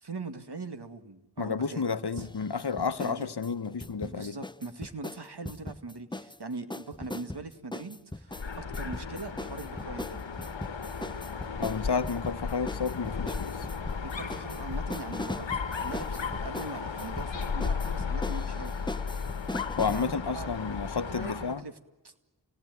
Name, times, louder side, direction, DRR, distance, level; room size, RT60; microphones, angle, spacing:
voice 1, 0.0-1.8 2.2-2.3 3.0-3.3 4.0-10.2 14.0-18.7 19.9-20.7 20.9-21.7 22.0-22.1, right 3 dB, 60° right, 2.1 m, -41 dB
voice 2, 1.4-4.4 11.6-13.7 19.8-21.6, left 5 dB, 60° left, 1.0 m, -31 dB
sound 1, 2.2-3.2 3.4-6.4 6.7-20.1, left 1 dB, 10° left, 0.8 m, -40 dB
Dog, 8.3-21.6, left 5 dB, 75° left, 1.3 m, -35 dB
28.5 x 18.5 x 9.4 m
wide cardioid pair, 45°, 45 cm